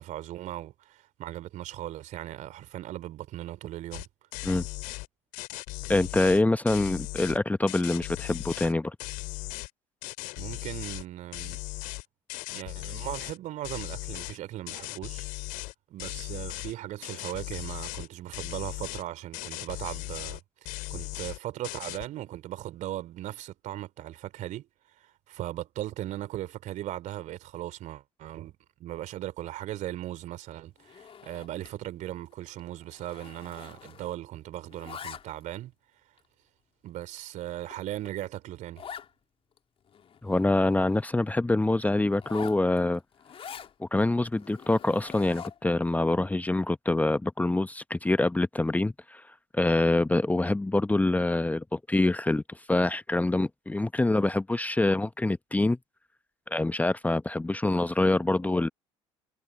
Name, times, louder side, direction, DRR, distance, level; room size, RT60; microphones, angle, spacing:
voice 1, 0.0-4.1 10.4-11.6 12.5-15.3 15.9-24.7 25.0-28.5 28.8-35.7 36.8-38.8, right 14 dB, 50° right, 3.3 m, -38 dB
sound 1, 3.9-4.1 4.3-5.1 5.3-7.4 7.7-8.7 9.0-9.7 10.0-11.0 11.3-13.4 13.6-14.4 14.7-15.7 16.0-16.7 17.0-18.1 18.3-19.0 19.3-20.4 20.7-21.4 21.6-22.1, left 22 dB, 60° left, 4.0 m, -38 dB
voice 2, 5.9-8.9 40.2-43.0 43.8-49.2 49.5-55.8 56.5-58.7, left 2 dB, 10° left, 1.1 m, -25 dB
Zipper (clothing), 30.8-31.8 32.1-32.3 32.6-34.3 34.5-35.6 36.2-36.3 36.9-37.0 37.4-37.5 37.7-37.8 38.1-38.2 38.8-39.1 39.6-39.7 39.9-41.2 42.1-43.7 44.3-45.7, left 8 dB, 35° left, 3.5 m, -45 dB
figure-of-eight pair, 60°, 16 cm